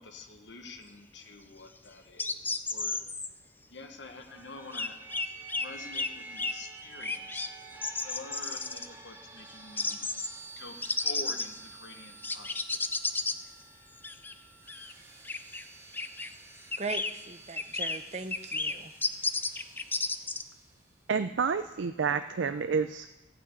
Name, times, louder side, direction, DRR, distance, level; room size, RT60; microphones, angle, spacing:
voice 1, 0.0-3.1 3.7-5.0 5.5-7.5 8.0-10.0 10.6-12.6, left 2 dB, 70° left, 5 dB, 1.2 m, -47 dB
sound 1, 2.2-3.3 4.7-5.7 5.9-6.1 6.4-6.5 7.0-7.5 7.8-8.9 9.8-10.3 10.8-11.6 12.2-13.4 14.0-14.3 14.7-14.9 15.2-15.7 15.9-16.3 16.7-17.1 17.6-18.0 18.3-18.7 19.0-20.4, left 3 dB, 10° left, 0.4 m, -32 dB
sound 2, 4.2-21.0, right 3 dB, 15° right, 1.6 m, -50 dB
voice 2, 16.8-18.9, right 3 dB, 35° right, 9 dB, 0.7 m, -39 dB
voice 3, 21.1-23.2, right 5 dB, 75° right, 10 dB, 0.4 m, -29 dB
14.5 x 6.1 x 8.3 m, 1.1 s
head